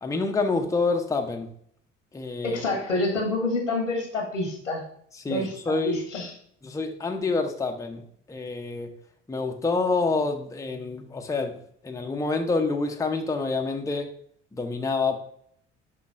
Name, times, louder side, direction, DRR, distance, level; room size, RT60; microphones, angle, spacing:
voice 1, 0.0-1.5 2.1-2.6 5.1-6.0 6.6-8.9 9.3-14.1 14.5-15.2, left 3 dB, 10° left, 4 dB, 0.7 m, -27 dB
voice 2, 2.4-4.8 5.3-5.5 5.8-6.3, left 2 dB, 85° left, 0 dB, 1.6 m, -27 dB
11.5 x 3.8 x 2.5 m, 0.65 s
figure-of-eight pair, 55°, 36 cm